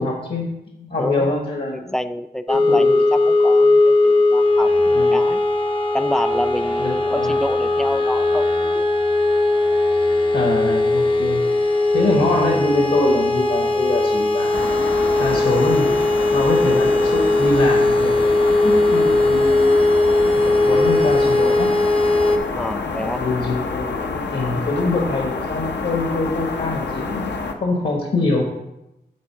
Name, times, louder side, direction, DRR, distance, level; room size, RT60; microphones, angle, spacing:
voice 1, 0.0-1.9 2.5-3.0 4.9-5.2 6.8-7.3 10.3-11.5 11.9-14.7 15.2-18.3 18.6-19.7 20.4-21.8 23.0-28.4, left 2 dB, 60° left, 0 dB, 1.2 m, -24 dB
voice 2, 1.0-1.4 1.7-4.7 5.1-5.4 5.9-8.9 22.6-23.3, equal, 5° left, 11 dB, 0.3 m, -27 dB
sound 1, 2.5-22.4, left 2 dB, 30° left, 0.7 m, -18 dB
sound 2, 14.5-27.5, left 4 dB, 85° left, 0.7 m, -28 dB
8.7 x 3.7 x 4.5 m, 0.89 s
wide cardioid pair, 70°, 18 cm